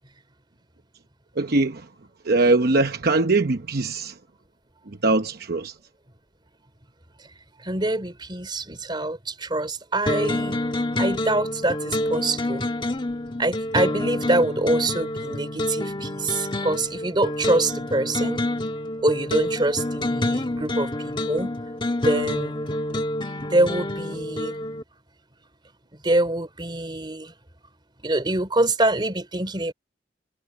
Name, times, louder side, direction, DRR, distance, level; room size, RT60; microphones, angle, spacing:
voice 1, 1.3-1.9 2.2-4.2 4.9-5.8, right 3 dB, 55° right, 0.9 m, -22 dB
voice 2, 7.6-10.6 11.0-12.7 13.4-18.4 19.0-21.5 22.0-22.6 23.5-24.5 26.0-27.3 28.0-29.7, right 2 dB, 25° right, 3.4 m, -25 dB
sound 1, 10.1-24.8, left 1 dB, 25° left, 1.5 m, -27 dB
head